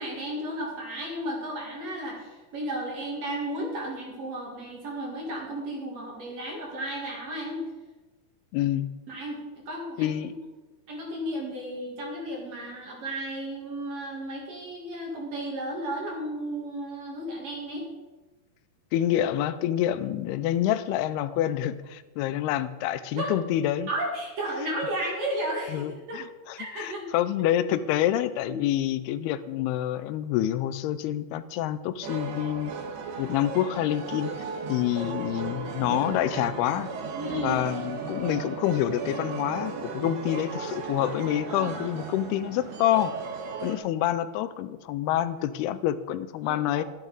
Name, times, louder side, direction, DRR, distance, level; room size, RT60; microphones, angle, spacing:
voice 1, 0.0-7.6 9.1-10.4 10.9-17.8 23.1-23.3 23.9-26.2 26.6-27.1 27.6-27.7 28.4-28.6 35.0-35.2 37.1-37.6 41.5-41.9 46.4-46.8, right 1 dB, 50° right, -1 dB, 2.5 m, -34 dB
voice 2, 8.5-8.9 10.0-10.3 18.9-23.9 25.7-32.7 33.2-34.3 34.7-36.9 37.4-43.1 43.6-46.8, left 12 dB, 85° left, 14 dB, 2.5 m, -27 dB
sound 1, 32.0-43.8, right 4 dB, 70° right, 2.6 m, -35 dB
12.0 x 10.5 x 4.0 m, 1.2 s
omnidirectional pair, 4.5 m